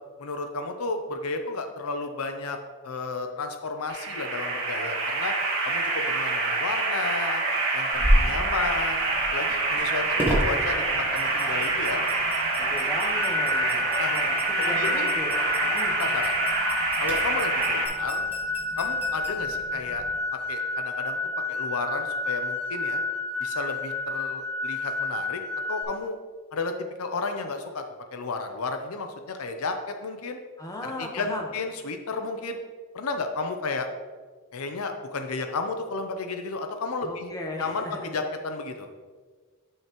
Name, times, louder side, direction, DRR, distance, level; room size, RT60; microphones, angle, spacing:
voice 1, 0.2-2.6 2.8-5.3 5.6-7.4 7.7-12.0 14.0-14.1 14.6-15.1 15.9-16.3 17.0-18.2 18.8-20.0 20.5-21.2 21.5-23.0 23.4-25.4 25.7-26.2 26.5-26.7 27.0-27.8 28.1-30.4 30.8-32.6 32.9-33.9 34.5-37.3 37.6-38.9, left 3 dB, 75° left, 6 dB, 0.6 m, -32 dB
sound 1, 3.9-17.9, right 3 dB, 60° right, 1.5 m, -26 dB
sound 2, 7.9-20.2, equal, 10° right, 1.4 m, -32 dB
voice 2, 12.7-13.8 14.1-15.3 15.6-16.0 30.6-31.5 37.0-38.1, left 1 dB, 15° left, 0 dB, 1.1 m, -36 dB
sound 3, 13.1-25.8, left 3 dB, 55° left, 1.4 m, -30 dB
10.5 x 5.6 x 3.0 m, 1.5 s
head